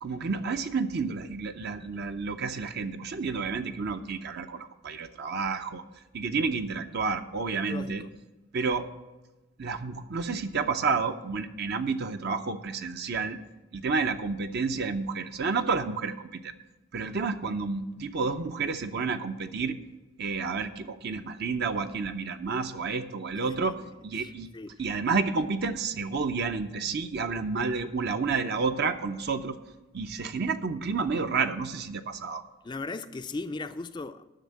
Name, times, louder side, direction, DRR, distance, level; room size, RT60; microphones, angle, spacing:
voice 1, 0.0-5.8 6.1-8.0 8.5-8.9 9.6-13.4 13.7-16.5 16.9-19.8 20.2-23.8 24.0-24.5 24.8-29.6 29.9-32.4, right 4 dB, 50° right, 8 dB, 0.5 m, -30 dB
voice 2, 7.7-8.1 23.4-24.9 32.6-34.2, left 3 dB, 20° left, 11 dB, 0.3 m, -38 dB
10.5 x 6.4 x 7.4 m, 1.1 s
head